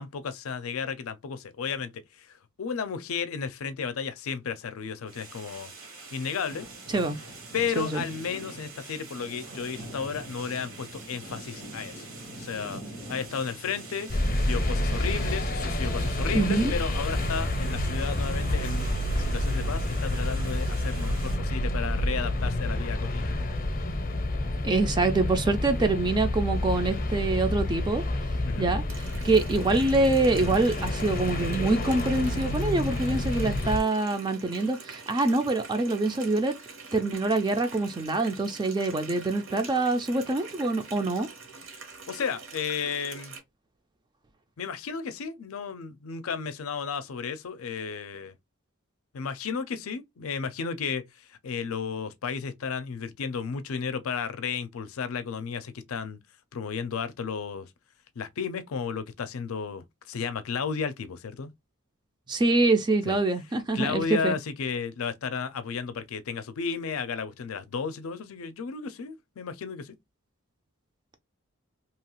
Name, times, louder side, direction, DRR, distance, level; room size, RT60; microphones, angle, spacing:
voice 1, 0.0-5.7 6.1-6.7 7.5-12.8 13.1-14.1 14.4-18.9 19.2-23.4 28.4-28.7 42.1-43.3 44.6-48.3 49.1-56.2 56.5-57.7 58.2-61.5 63.1-63.2 63.7-70.0, left 6 dB, 85° left, 0.5 m, -33 dB
sound 1, 5.1-21.4, right 2 dB, 85° right, 1.4 m, -43 dB
sound 2, 14.1-33.8, left 1 dB, 40° left, 0.6 m, -29 dB
voice 2, 16.3-16.7 24.6-28.0 28.6-28.8 29.2-36.6 36.9-41.3 62.3-64.4, right 2 dB, 20° right, 0.3 m, -25 dB
Water tap faucet, 28.9-43.4, right 4 dB, 65° right, 0.8 m, -45 dB
2.9 x 2.3 x 2.9 m
head